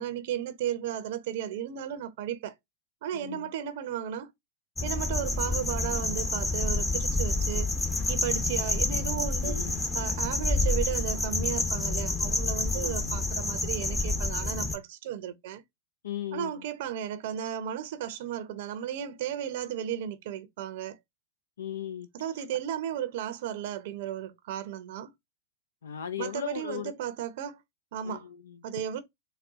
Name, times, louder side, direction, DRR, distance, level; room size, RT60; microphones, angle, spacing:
voice 1, 0.0-2.5 3.0-4.3 4.8-7.7 8.1-9.6 9.9-15.6 16.3-21.0 22.1-25.1 26.2-27.6 27.9-28.3 28.6-29.0, right 10 dB, 60° right, 0.6 m, -34 dB
voice 2, 3.1-3.5 8.9-9.2 9.4-9.8 12.7-13.2 16.0-16.6 21.6-22.1 25.8-26.9 28.0-28.6, left 9 dB, 80° left, 0.4 m, -37 dB
sound 1, 4.8-14.8, left 2 dB, 15° left, 0.8 m, -28 dB
4.1 x 2.1 x 3.5 m
hypercardioid pair, 100°, 0 cm